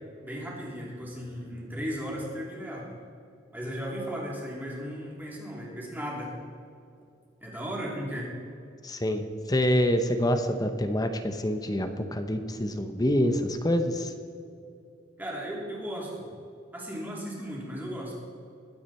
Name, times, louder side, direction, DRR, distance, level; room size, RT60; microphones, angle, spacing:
voice 1, 0.2-2.9 3.5-6.3 7.4-8.3 15.2-16.3 16.7-18.1, equal, 10° right, -4 dB, 3.1 m, -36 dB
voice 2, 8.8-14.1, equal, 20° left, 8 dB, 0.8 m, -26 dB
21.5 x 8.6 x 4.3 m, 2.5 s
head